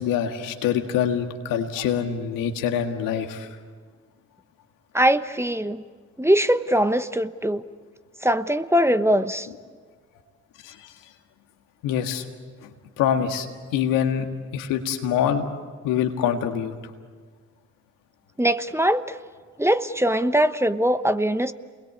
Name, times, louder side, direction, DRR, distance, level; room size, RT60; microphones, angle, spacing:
voice 1, 0.0-3.5 10.6-10.9 11.8-12.2 12.6-12.7 13.0-13.5 13.7-14.3 14.5-15.5 15.8-16.7, left 8 dB, 85° left, 5 dB, 1.9 m, -25 dB
voice 2, 4.9-5.8 6.2-7.6 8.2-9.5 18.4-19.2 19.6-21.5, right 1 dB, 10° right, 11 dB, 1.1 m, -21 dB
29.0 x 22.0 x 8.7 m, 1.5 s
hypercardioid pair, 45°, 32 cm